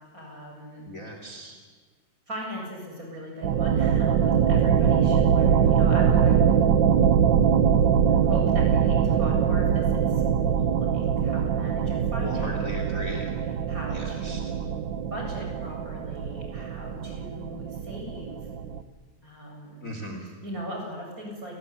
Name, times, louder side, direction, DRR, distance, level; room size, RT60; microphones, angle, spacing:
voice 1, 0.1-0.9 2.3-6.6 8.2-13.1 13.7-14.8 15.1-18.4 19.2-19.9 20.4-21.5, equal, 25° right, 0 dB, 8.2 m, -39 dB
voice 2, 0.8-1.6 12.2-13.3 13.9-14.4 19.8-20.3, equal, 25° left, 3 dB, 3.1 m, -37 dB
sound 1, 3.4-18.8, right 8 dB, 65° right, 1.1 m, -23 dB
29.0 x 20.5 x 10.0 m, 1.5 s
omnidirectional pair, 3.4 m